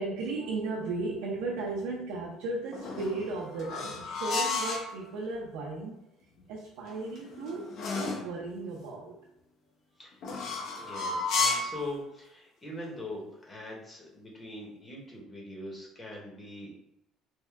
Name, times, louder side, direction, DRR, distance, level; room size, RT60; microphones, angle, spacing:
voice 1, 0.0-6.0 6.5-9.2, right 3 dB, 90° right, -3 dB, 0.6 m, -35 dB
sound 1, 2.7-4.9 6.9-8.3 10.2-11.8, left 3 dB, 55° left, 0.9 m, -32 dB
voice 2, 10.8-16.7, left 1 dB, 20° left, -3 dB, 1.1 m, -42 dB
3.5 x 2.2 x 3.4 m, 0.83 s
cardioid pair, 130°, 0 cm